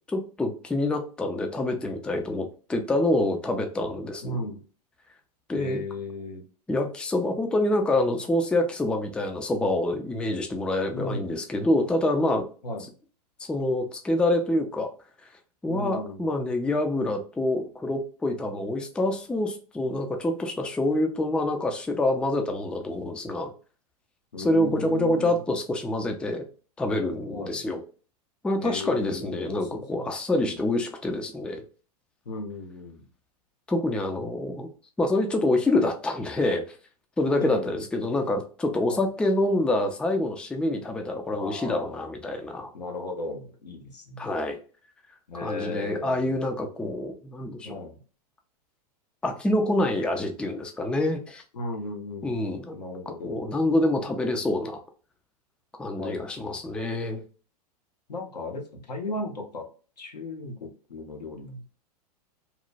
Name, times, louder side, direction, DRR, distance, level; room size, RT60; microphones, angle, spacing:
voice 1, 0.1-4.4 5.5-5.8 6.7-12.5 13.5-14.9 15.6-23.5 24.4-26.4 26.8-27.8 28.4-31.6 33.7-34.7 35.0-36.8 37.2-42.7 44.2-44.6 45.3-47.8 49.2-51.4 52.2-52.8 53.2-54.8 55.8-57.2, left 1 dB, 5° left, 5 dB, 0.4 m, -26 dB
voice 2, 4.2-4.6 5.5-6.4 10.9-11.4 12.6-12.8 15.7-16.3 24.3-25.4 27.3-27.6 28.6-30.1 30.3-30.6 32.2-33.0 37.4-37.8 38.9-39.0 41.3-42.1 42.7-44.3 45.3-46.4 47.6-48.0 51.5-52.4 52.7-53.4 56.0-56.8 58.1-59.7 60.0-61.6, left 2 dB, 85° left, 3 dB, 0.9 m, -36 dB
3.0 x 2.1 x 2.4 m, 0.37 s
hypercardioid pair, 105°, 21 cm